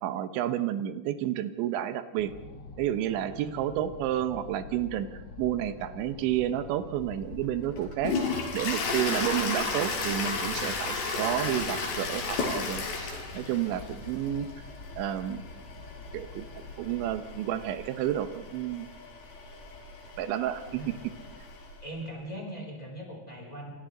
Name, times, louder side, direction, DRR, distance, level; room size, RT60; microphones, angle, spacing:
voice 1, 0.0-2.3 2.8-8.2 8.5-14.5 15.0-15.4 16.1-18.9 20.2-21.0, right 11 dB, 90° right, 10 dB, 3.3 m, -31 dB
sound 1, 2.2-17.2, left 3 dB, 60° left, 1.4 m, -45 dB
voice 2, 3.4-3.7 20.7-21.0 21.8-23.7, right 1 dB, 10° left, -3 dB, 7.3 m, -40 dB
Toilet flush, 7.0-21.7, left 4 dB, 75° left, 5.9 m, -34 dB
28.5 x 26.5 x 3.9 m, 1.1 s
omnidirectional pair, 5.1 m